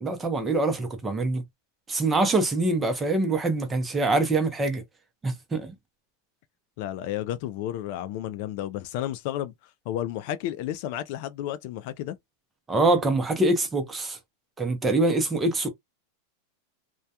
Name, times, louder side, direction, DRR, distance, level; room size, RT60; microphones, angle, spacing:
voice 1, 0.0-1.4 1.9-4.8 5.2-5.7 12.7-14.2 14.6-15.7, right 2 dB, 15° right, 0.6 m, -24 dB
voice 2, 6.8-9.5 9.9-12.2, left 12 dB, 55° left, 0.3 m, -32 dB
2.2 x 2.2 x 2.7 m
supercardioid pair, 145°, 0 cm